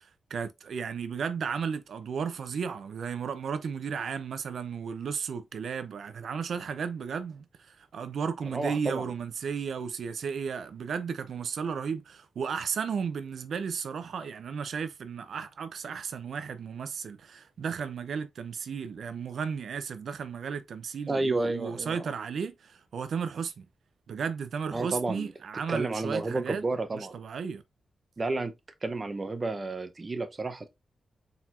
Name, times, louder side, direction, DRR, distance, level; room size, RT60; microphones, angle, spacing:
voice 1, 0.0-23.7 24.1-26.6 26.9-27.6, right 6 dB, 75° right, 0.6 m, -34 dB
voice 2, 8.5-9.1 21.1-22.1 24.7-25.3 25.7-27.2 28.2-28.5 28.8-30.7, right 3 dB, 30° right, 0.7 m, -31 dB
4.4 x 4.0 x 2.5 m
wide cardioid pair, 110°, 0 cm